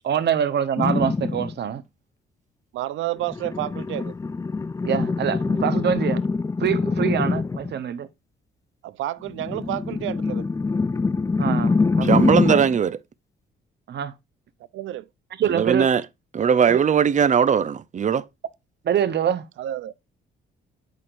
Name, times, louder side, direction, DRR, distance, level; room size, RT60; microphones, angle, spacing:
voice 1, 0.0-1.8 4.8-6.2 6.6-8.1 11.4-12.2 13.9-14.1 15.4-15.8 16.7-16.8 18.8-19.4, right 9 dB, 60° right, 1.1 m, -24 dB
sound 1, 0.8-1.5 3.2-7.8 9.3-12.8, left 4 dB, 15° left, 0.4 m, -24 dB
voice 2, 2.7-4.1 8.8-10.5 14.7-15.1 19.6-19.9, right 14 dB, 80° right, 0.6 m, -30 dB
voice 3, 12.0-13.0 15.5-16.0 16.3-18.3, right 7 dB, 40° right, 0.7 m, -19 dB
8.6 x 6.5 x 2.5 m
cardioid pair, 90°, 20 cm